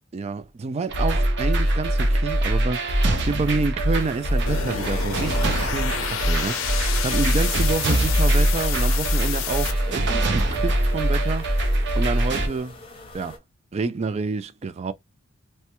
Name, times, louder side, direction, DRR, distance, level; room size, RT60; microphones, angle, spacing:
voice 1, 0.1-11.7 11.9-12.8 13.1-13.4 13.7-14.9, right 4 dB, 30° right, 0.3 m, -28 dB
sound 1, 0.9-12.5, right 1 dB, 60° right, 0.7 m, -22 dB
sound 2, 3.9-13.4, left 1 dB, 25° left, 0.7 m, -43 dB
sound 3, 4.5-9.7, left 8 dB, 70° left, 0.5 m, -29 dB
3.2 x 2.1 x 2.9 m
head